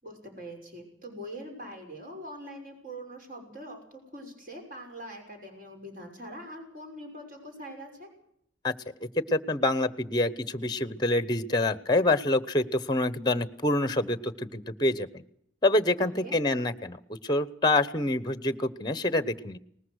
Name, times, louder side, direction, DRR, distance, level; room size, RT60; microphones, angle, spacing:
voice 1, 0.0-8.1 16.0-16.3, equal, 45° right, 3 dB, 6.1 m, -43 dB
voice 2, 9.3-15.2 15.6-17.0 17.2-19.6, left 2 dB, 20° left, 15 dB, 0.9 m, -26 dB
21.0 x 20.0 x 6.4 m, 0.70 s
head